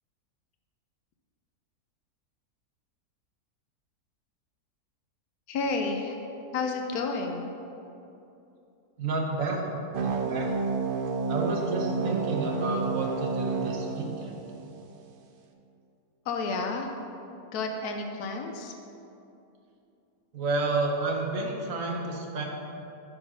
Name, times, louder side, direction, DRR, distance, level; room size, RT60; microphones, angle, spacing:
voice 1, 5.5-6.2 6.5-7.5 16.2-16.9 17.3-18.7, left 3 dB, 75° left, 3 dB, 1.2 m, -31 dB
voice 2, 9.0-10.5 11.3-14.4 20.3-22.4, right 3 dB, 60° right, 0 dB, 1.4 m, -30 dB
sound 1, 9.9-14.9, right 4 dB, 85° right, 0.4 m, -30 dB
9.7 x 3.8 x 6.1 m, 2.8 s
omnidirectional pair, 1.6 m